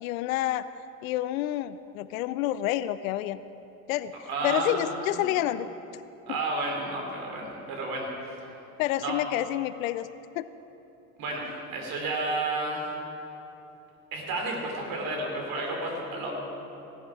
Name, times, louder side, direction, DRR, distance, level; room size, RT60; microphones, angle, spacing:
voice 1, 0.0-0.7 1.0-3.4 3.9-4.1 4.4-5.7 8.8-10.1 10.4-10.5, left 14 dB, 70° left, 15 dB, 0.5 m, -28 dB
voice 2, 4.3-5.2 6.3-8.5 9.0-9.2 11.2-12.8 14.1-16.3, right 2 dB, 55° right, 0 dB, 3.8 m, -31 dB
17.0 x 11.0 x 4.8 m, 2.9 s
hypercardioid pair, 65°, 42 cm